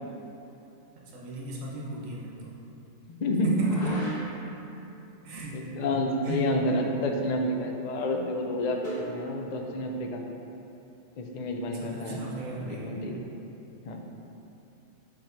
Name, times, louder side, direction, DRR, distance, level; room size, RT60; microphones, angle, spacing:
voice 1, 0.9-2.3 3.4-4.0 5.2-5.6 6.2-6.4 11.7-13.1, right 3 dB, 70° right, -3 dB, 1.4 m, -35 dB
voice 2, 3.1-3.5 5.5-8.8 9.1-10.2 11.2-12.2 12.6-13.2 13.8-14.0, left 1 dB, 60° left, 2 dB, 0.4 m, -29 dB
sound 1, 3.5-4.5 6.7-7.0 7.3-7.4 8.8-9.2, equal, 45° left, 1.6 m, -38 dB
7.2 x 3.0 x 5.7 m, 2.9 s
omnidirectional pair, 1.4 m